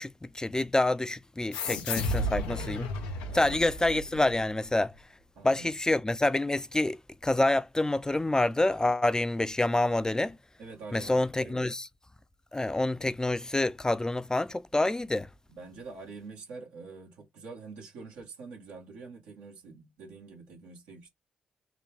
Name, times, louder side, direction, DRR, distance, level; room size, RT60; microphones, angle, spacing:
voice 1, 0.0-2.9 3.3-4.9 5.4-10.4 10.9-11.9 12.5-15.3, left 2 dB, 20° left, 0.5 m, -27 dB
sound 1, 1.5-4.6, left 1 dB, 90° left, 0.7 m, -33 dB
voice 2, 3.2-3.7 5.3-5.7 10.6-11.6 15.5-21.1, right 4 dB, 85° right, 1.8 m, -46 dB
3.8 x 2.2 x 3.4 m
hypercardioid pair, 40°, 4 cm